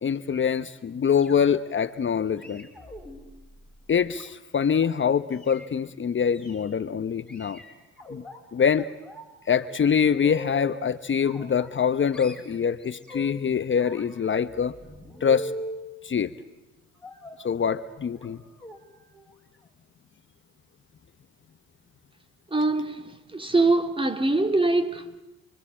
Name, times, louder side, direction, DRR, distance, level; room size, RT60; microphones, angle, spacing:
voice 1, 0.0-2.6 3.9-7.6 8.1-8.2 8.5-8.9 9.5-14.7 15.2-15.5 16.0-16.3 17.4-18.4, left 7 dB, 40° left, 1.0 m, -24 dB
sound 1, 1.1-1.7 2.4-4.9 5.3-5.7 6.3-6.6 7.3-8.4 8.8-9.3 9.6-10.8 11.2-11.9 12.1-13.4 13.8-15.8 17.0-17.5 18.1-18.3 18.6-18.8 19.1-19.3 19.6-19.7, left 1 dB, 5° left, 5.9 m, -42 dB
voice 2, 22.5-25.2, right 2 dB, 15° right, 2.5 m, -23 dB
28.5 x 23.5 x 8.8 m
cardioid pair, 90°, 30 cm